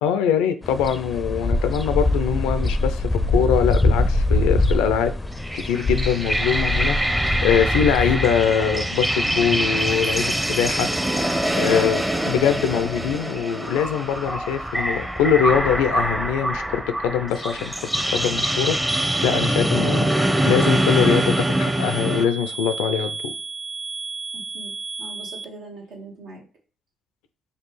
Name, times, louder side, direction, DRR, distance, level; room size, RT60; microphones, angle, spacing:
voice 1, 0.0-5.1 5.5-10.9 11.5-17.7 18.1-20.1 20.4-23.3, left 8 dB, 85° left, 0.4 m, -23 dB
sound 1, 0.6-13.2, left 2 dB, 20° left, 0.5 m, -25 dB
sound 2, 5.3-22.2, right 1 dB, 15° right, 0.8 m, -24 dB
sound 3, 18.9-25.4, right 4 dB, 45° right, 0.4 m, -32 dB
voice 2, 24.3-26.4, right 2 dB, 70° right, 1.1 m, -41 dB
5.3 x 2.3 x 3.1 m
hypercardioid pair, 45°, 0 cm